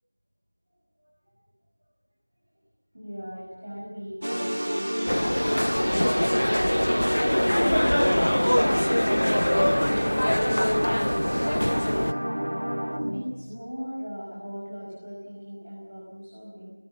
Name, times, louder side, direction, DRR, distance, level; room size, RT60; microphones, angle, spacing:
voice 1, 2.9-5.1 5.6-12.1 13.1-16.7, equal, 30° right, -5 dB, 5.9 m, -39 dB
sound 1, 4.2-13.4, equal, 50° right, 2.6 m, -29 dB
sound 2, 5.1-12.1, equal, 40° left, 0.6 m, -24 dB
22.0 x 19.0 x 7.7 m, 1.3 s
figure-of-eight pair, 180°, 0 cm